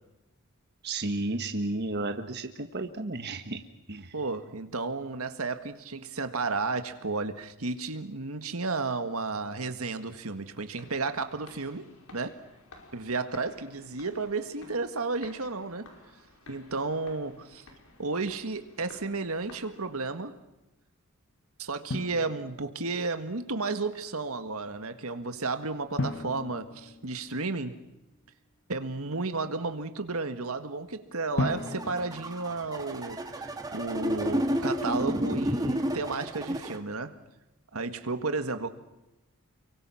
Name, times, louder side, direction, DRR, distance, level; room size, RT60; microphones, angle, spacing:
voice 1, 0.8-3.6 3.9-4.1, right 2 dB, 50° right, 1.5 m, -32 dB
voice 2, 4.1-12.4 12.9-15.9 16.5-17.7 18.0-20.4 21.6-27.8 28.7-37.2 37.7-38.7, right 3 dB, 75° right, 1.8 m, -33 dB
sound 1, 10.2-20.2, left 2 dB, 75° left, 5.3 m, -54 dB
Drum, 21.9-23.0 26.0-27.8 31.4-33.4, left 2 dB, 55° left, 1.4 m, -36 dB
sound 2, 31.5-36.8, equal, 15° right, 2.0 m, -31 dB
30.0 x 24.0 x 5.8 m
head